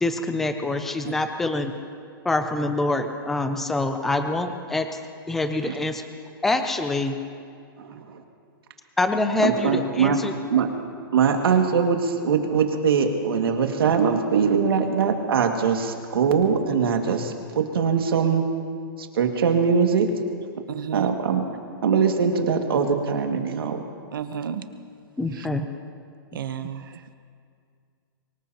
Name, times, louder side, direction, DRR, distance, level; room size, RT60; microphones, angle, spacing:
voice 1, 0.0-1.7 2.2-4.9 5.3-6.0 6.4-7.2 9.0-10.3 25.2-25.7, left 2 dB, ahead, 7 dB, 0.4 m, -25 dB
voice 2, 7.8-8.2 9.4-10.2 10.5-10.7 11.1-18.4 19.0-20.1 20.9-21.4 21.8-23.8, right 6 dB, 80° right, 4 dB, 2.0 m, -22 dB
voice 3, 20.7-21.1 24.1-24.6 25.4-25.5 26.3-26.8, right 8 dB, 65° right, 10 dB, 0.9 m, -31 dB
24.0 x 20.0 x 2.9 m, 2.2 s
hypercardioid pair, 175°, 12 cm